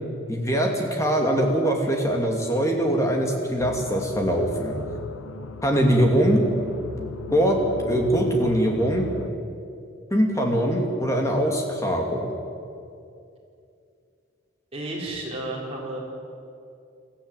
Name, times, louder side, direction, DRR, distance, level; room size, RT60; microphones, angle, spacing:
voice 1, 0.3-4.7 5.6-6.4 7.0-9.1 10.1-12.3, equal, 15° left, 1 dB, 2.4 m, -22 dB
sound 1, 3.6-9.3, left 4 dB, 90° left, 0.8 m, -37 dB
voice 2, 14.7-16.0, right 1 dB, 30° right, -3 dB, 4.4 m, -32 dB
22.0 x 14.5 x 9.2 m, 2.5 s
head